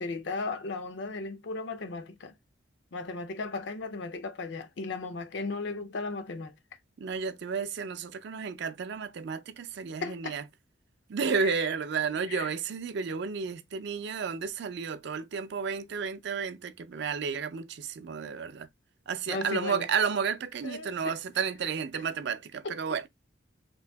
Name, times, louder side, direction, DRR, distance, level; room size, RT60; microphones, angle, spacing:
voice 1, 0.0-2.3 2.9-6.5 10.0-10.4 11.5-11.6 12.3-12.5 19.3-19.9 20.6-21.2 22.6-22.8, left 3 dB, 70° left, 0.5 m, -36 dB
voice 2, 7.0-10.5 11.1-18.7 19.1-23.1, right 6 dB, 65° right, 0.4 m, -32 dB
2.9 x 2.6 x 3.3 m
head